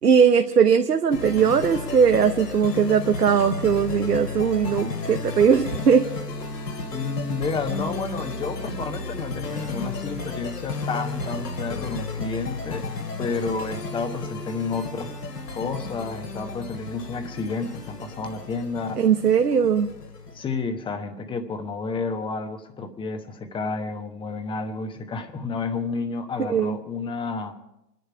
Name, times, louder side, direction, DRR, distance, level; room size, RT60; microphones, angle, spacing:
voice 1, 0.0-6.0 19.0-19.9 26.5-26.8, right 7 dB, 75° right, 5 dB, 1.1 m, -19 dB
sound 1, 1.1-20.4, left 4 dB, 75° left, 2.9 m, -33 dB
voice 2, 6.9-12.9 13.2-15.2 15.5-19.0 20.3-27.5, left 4 dB, 10° left, 7 dB, 1.1 m, -31 dB
26.0 x 11.0 x 4.7 m, 0.85 s
figure-of-eight pair, 115°, 48 cm